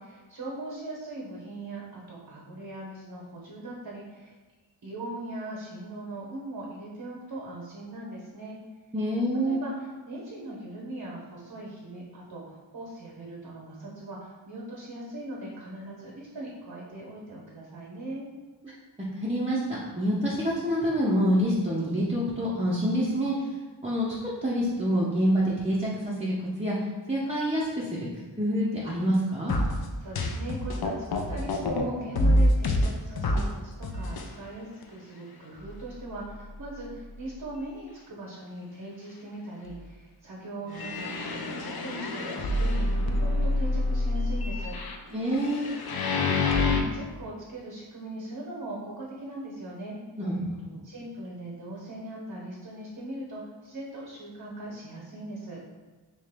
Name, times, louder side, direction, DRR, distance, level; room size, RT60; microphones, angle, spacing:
voice 1, 0.0-4.4 4.8-8.6 9.4-18.3 30.0-44.8 46.1-50.0 50.8-55.6, right 1 dB, 55° right, -3 dB, 0.8 m, -40 dB
voice 2, 8.9-9.6 19.2-23.5 23.8-24.1 24.4-26.8 27.1-28.1 28.4-29.5 45.1-45.7 50.2-50.8, equal, 15° right, -8 dB, 0.6 m, -27 dB
sound 1, 29.5-31.8 32.2-33.5 33.8-34.3 34.8-34.9 35.6-35.7 36.2-36.3 40.7-46.8, left 2 dB, 55° left, 0.5 m, -27 dB
3.1 x 2.9 x 3.4 m, 1.3 s
wide cardioid pair, 55°, 44 cm